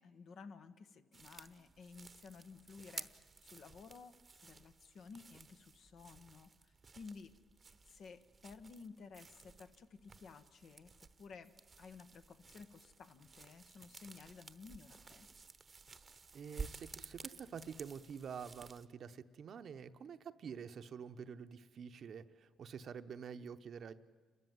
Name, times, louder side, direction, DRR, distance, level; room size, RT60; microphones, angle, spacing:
voice 1, 0.0-7.3 7.9-10.9 11.2-15.3, left 5 dB, 65° left, 9 dB, 1.3 m, -55 dB
sound 1, 1.1-18.9, right 4 dB, 35° right, 0.9 m, -54 dB
voice 2, 16.3-23.9, right 7 dB, 60° right, 10 dB, 0.9 m, -48 dB
29.0 x 13.5 x 9.3 m, 1.4 s
cardioid pair, 90°, 0 cm